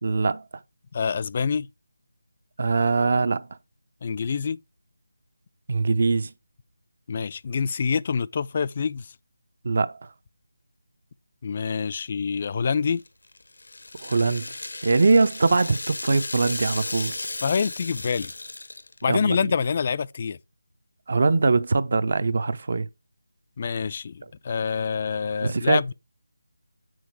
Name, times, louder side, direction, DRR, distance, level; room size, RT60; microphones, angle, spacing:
voice 1, 0.0-0.4 2.6-3.5 5.7-6.3 9.6-10.1 14.0-17.2 19.1-19.4 21.1-22.9 25.4-25.9, right 3 dB, 50° right, 0.7 m, -22 dB
voice 2, 0.9-1.7 4.0-4.6 7.1-9.1 11.4-13.0 17.4-18.3 19.0-20.4 23.6-25.9, left 6 dB, 35° left, 0.4 m, -26 dB
Rattle (instrument), 12.9-19.1, left 2 dB, 75° left, 0.9 m, -35 dB
8.1 x 6.3 x 4.7 m
figure-of-eight pair, 165°, 0 cm